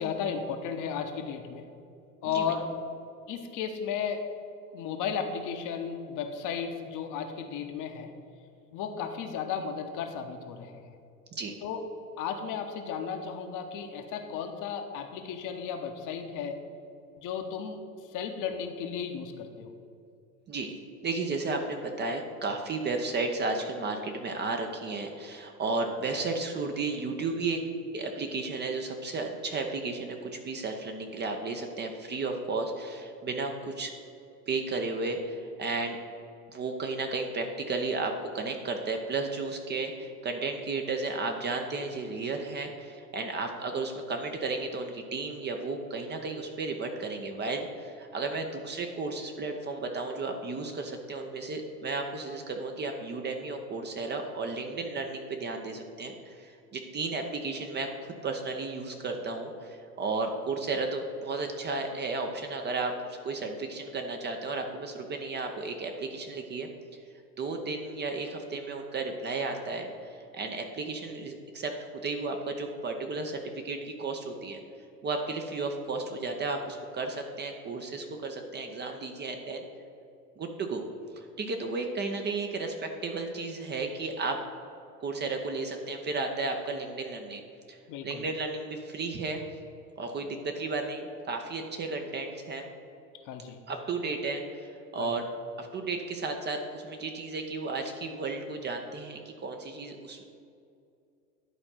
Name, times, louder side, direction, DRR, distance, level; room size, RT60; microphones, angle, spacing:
voice 1, 0.0-1.7 2.2-2.7 3.3-4.3 4.7-8.1 8.7-10.8 11.6-11.8 12.2-16.6 17.2-17.8 18.1-19.7 87.9-88.2 93.2-93.6 95.0-95.1, left 7 dB, 40° left, 5 dB, 0.9 m, -34 dB
voice 2, 21.0-27.6 27.9-33.9 34.5-36.0 36.5-66.7 67.4-71.7 72.0-74.6 75.0-79.7 80.4-80.9 81.2-84.4 85.0-87.4 87.7-87.8 88.0-89.4 90.0-92.7 93.7-95.3 95.6-100.2, right 3 dB, 20° right, 4 dB, 0.7 m, -33 dB
11.0 x 4.3 x 5.7 m, 2.5 s
figure-of-eight pair, 80°, 48 cm